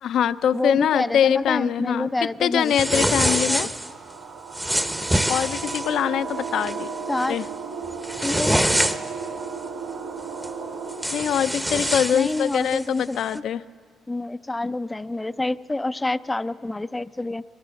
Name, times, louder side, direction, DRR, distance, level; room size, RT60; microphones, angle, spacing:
voice 1, 0.0-2.1 2.4-3.7 5.3-6.9 7.3-7.5 11.1-13.6, left 9 dB, 70° left, 13 dB, 0.5 m, -23 dB
voice 2, 0.5-3.7 7.1-7.4 8.2-8.5 12.1-13.4 14.1-17.4, left 2 dB, 15° left, 14 dB, 0.4 m, -28 dB
sound 1, 2.7-3.9 4.5-5.9 6.4-6.8 7.2-7.4 7.9-9.2 10.4-10.5 10.9-12.8, equal, 5° right, 0.8 m, -25 dB
sound 2, 3.3-11.6, right 5 dB, 90° right, 1.8 m, -35 dB
20.5 x 18.5 x 7.0 m, 2.1 s
cardioid pair, 90°, 0 cm